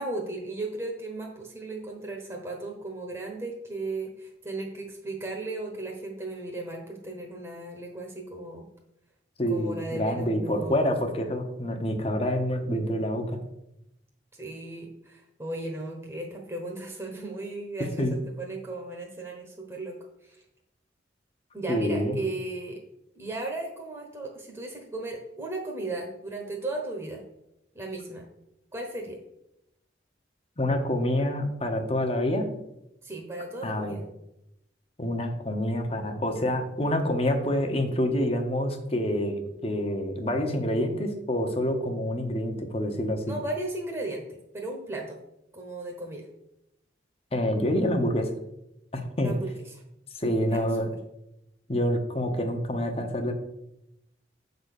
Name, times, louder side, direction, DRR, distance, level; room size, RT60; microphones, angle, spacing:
voice 1, 0.0-8.6 9.5-11.0 14.3-20.4 21.5-22.8 23.1-27.2 27.7-28.3 28.7-29.2 33.0-34.0 43.3-44.2 44.5-45.2 45.5-46.3 49.2-49.8 50.5-51.0, right 2 dB, 15° right, -1 dB, 1.1 m, -36 dB
voice 2, 9.4-13.4 18.0-18.2 21.7-22.2 30.6-32.5 33.6-34.0 35.0-43.3 47.3-48.3 48.9-49.3 50.2-50.9 51.7-53.3, equal, 35° left, 5 dB, 1.0 m, -27 dB
7.8 x 4.0 x 6.6 m, 0.84 s
head